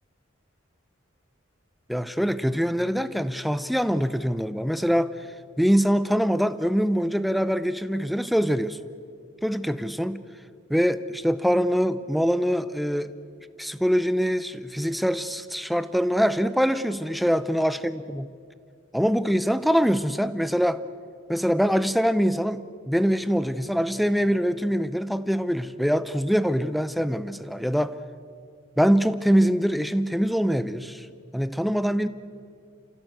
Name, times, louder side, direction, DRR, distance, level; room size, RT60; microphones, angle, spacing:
voice 1, 1.9-5.1 5.6-8.8 9.4-10.2 10.7-13.1 13.6-18.3 18.9-20.8 21.3-27.9 28.8-31.1 31.3-32.1, equal, ahead, 13 dB, 0.6 m, -24 dB
29.5 x 16.0 x 8.0 m, 2.3 s
head